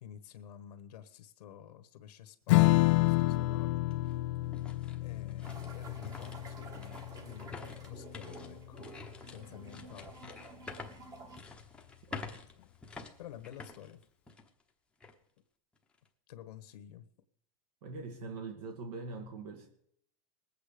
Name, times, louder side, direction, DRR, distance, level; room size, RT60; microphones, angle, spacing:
voice 1, 0.0-3.9 5.0-8.9 9.3-10.3 13.2-14.0 16.3-17.1, left 10 dB, 75° left, 10 dB, 1.3 m, -50 dB
Strum, 2.5-9.3, left 19 dB, 45° left, 0.4 m, -30 dB
sound 1, 3.7-14.6 15.0-15.1 15.7-16.1, left 4 dB, 5° left, 0.9 m, -49 dB
sound 2, 5.4-11.4, right 3 dB, 15° right, 1.3 m, -51 dB
voice 2, 12.1-12.4 17.8-19.7, right 3 dB, 65° right, 4 dB, 2.0 m, -43 dB
20.5 x 8.4 x 5.0 m, 0.68 s
supercardioid pair, 160°, 21 cm